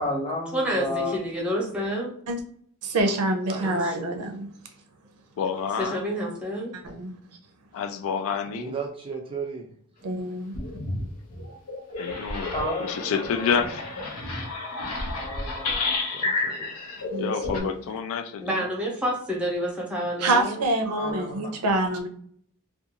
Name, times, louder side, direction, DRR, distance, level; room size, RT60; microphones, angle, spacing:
voice 1, 0.0-1.1 3.0-3.1 12.5-13.6 15.1-15.9 20.9-21.4, left 1 dB, 25° left, -1 dB, 0.8 m, -32 dB
voice 2, 0.5-2.1 3.6-3.9 5.8-6.7 18.4-20.6, equal, 5° right, -3 dB, 0.8 m, -28 dB
voice 3, 2.8-4.5 6.7-7.2 10.0-10.5 17.1-17.8 20.2-22.1, right 2 dB, 90° right, 6 dB, 0.5 m, -26 dB
voice 4, 3.5-4.0 4.6-4.7 8.5-9.8 13.3-13.4 16.1-16.8 18.3-18.4 21.3-21.6, right 5 dB, 25° right, 1 dB, 0.3 m, -37 dB
voice 5, 5.4-6.0 7.7-8.7 12.0-13.8 17.1-18.7, left 6 dB, 65° left, 7 dB, 0.3 m, -29 dB
sound 1, 10.1-10.2 10.5-11.0 11.3-17.6, left 3 dB, 90° left, 0.7 m, -31 dB
2.4 x 2.3 x 2.8 m, 0.62 s
head